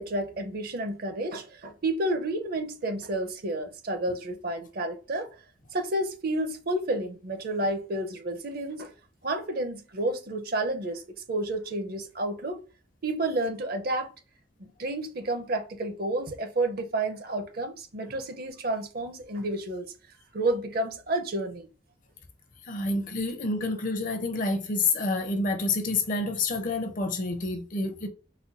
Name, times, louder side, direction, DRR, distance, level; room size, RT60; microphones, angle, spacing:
voice 1, 0.0-5.3 5.7-8.9 9.2-11.0 11.3-12.6 13.0-14.1 14.6-19.9 20.3-21.7, right 1 dB, 50° right, 0.6 m, -30 dB
voice 2, 22.7-28.1, left 3 dB, 45° left, 0.6 m, -28 dB
4.2 x 2.2 x 2.5 m
head